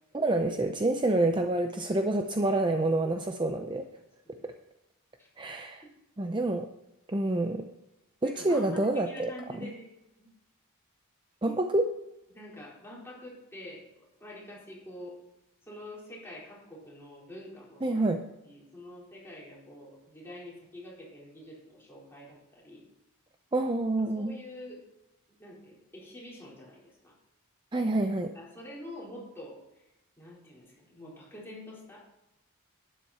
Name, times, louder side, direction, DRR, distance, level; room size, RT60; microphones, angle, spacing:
voice 1, 0.1-3.9 4.4-4.5 5.4-5.8 6.2-6.7 7.1-7.6 8.2-9.7 11.4-11.9 17.8-18.2 23.5-24.3 27.7-28.3, right 2 dB, 20° right, 5 dB, 0.6 m, -27 dB
voice 2, 8.2-9.9 10.2-10.3 12.3-15.2 15.7-18.0 18.4-22.8 24.1-24.8 25.4-27.1 28.3-29.8 30.2-32.0, left 1 dB, 10° left, -5 dB, 4.3 m, -46 dB
12.0 x 10.0 x 4.3 m, 0.91 s
head